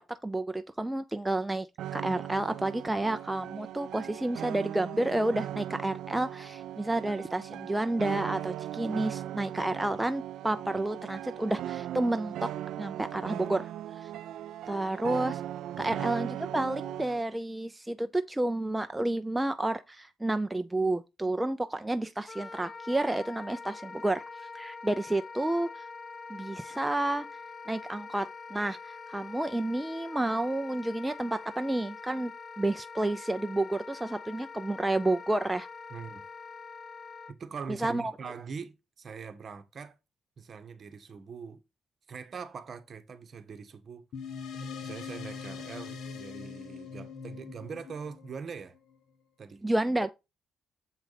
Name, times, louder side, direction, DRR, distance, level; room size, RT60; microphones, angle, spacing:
voice 1, 0.0-1.7 1.9-12.5 12.8-13.7 14.0-14.1 14.7-15.4 15.8-25.9 26.3-27.3 27.7-32.3 32.6-35.7 37.8-38.1 49.6-50.1, right 2 dB, 10° right, 0.5 m, -30 dB
sound 1, 1.8-17.2, right 12 dB, 80° right, 0.4 m, -38 dB
Wind instrument woodwind instrument, 22.3-37.3, left 4 dB, 30° left, 0.7 m, -44 dB
voice 2, 35.9-36.3 37.3-40.0 40.4-41.6 42.1-44.0 44.8-48.7 49.4-49.6, right 5 dB, 45° right, 1.2 m, -42 dB
sound 2, 44.1-48.9, left 5 dB, 70° left, 1.2 m, -42 dB
7.6 x 4.7 x 4.0 m
cardioid pair, 90°, 0 cm